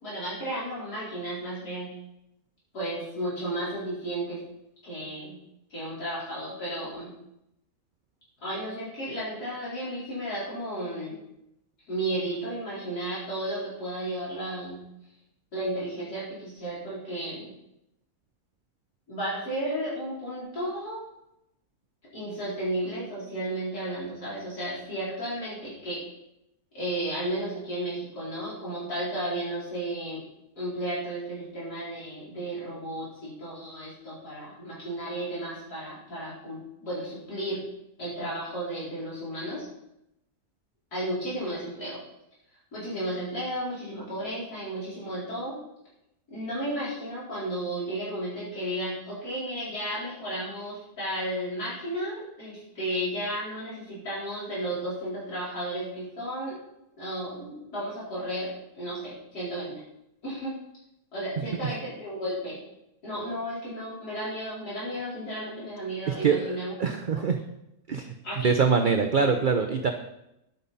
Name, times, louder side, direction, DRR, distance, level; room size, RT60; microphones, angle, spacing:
voice 1, 0.0-1.9 2.7-4.4 4.8-5.4 5.7-7.1 8.4-11.2 11.9-14.8 15.5-17.5 19.1-21.1 22.1-26.0 26.7-30.2 30.6-37.6 38.0-39.6 40.9-42.0 42.7-45.6 46.3-56.6 57.0-59.7 60.2-60.5 61.1-62.6 63.0-66.7 67.1-67.2 68.2-68.5, right 1 dB, 80° left, -9 dB, 4.9 m, -33 dB
voice 2, 66.1-67.4 67.9-68.2 68.4-69.9, right 5 dB, 50° right, 6 dB, 0.6 m, -24 dB
10.5 x 9.0 x 4.2 m, 0.84 s
omnidirectional pair, 1.6 m